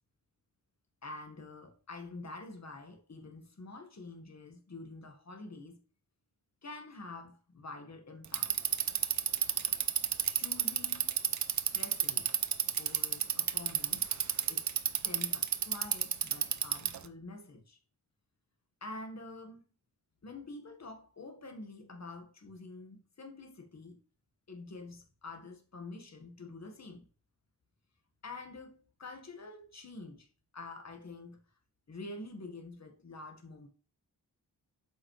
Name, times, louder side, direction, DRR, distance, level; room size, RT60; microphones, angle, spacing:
voice 1, 1.0-5.8 6.6-8.6 10.3-11.2 11.7-12.5 12.7-14.1 14.5-14.7 15.0-17.8 18.8-19.6 20.2-24.0 24.5-27.1 28.2-30.3 30.5-31.4 31.9-33.7, left 2 dB, 45° left, 1.6 m, -47 dB
Bicycle, 8.2-17.1, right 8 dB, 45° right, 0.6 m, -30 dB
8.0 x 5.4 x 3.2 m
wide cardioid pair, 95°, 39 cm